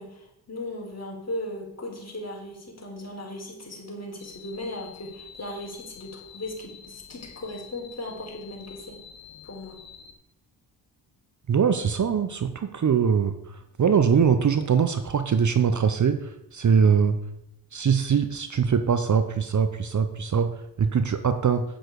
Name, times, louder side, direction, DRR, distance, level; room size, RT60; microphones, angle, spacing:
voice 1, 0.0-9.0 9.4-9.8, left 1 dB, 30° left, -1 dB, 4.0 m, -37 dB
sound 1, 4.2-10.1, left 8 dB, 65° left, 1.7 m, -48 dB
voice 2, 11.5-13.3 13.8-17.2 17.7-20.5 20.8-21.6, right 6 dB, 40° right, 9 dB, 0.9 m, -22 dB
8.9 x 7.7 x 4.8 m, 0.82 s
hypercardioid pair, 50°, 47 cm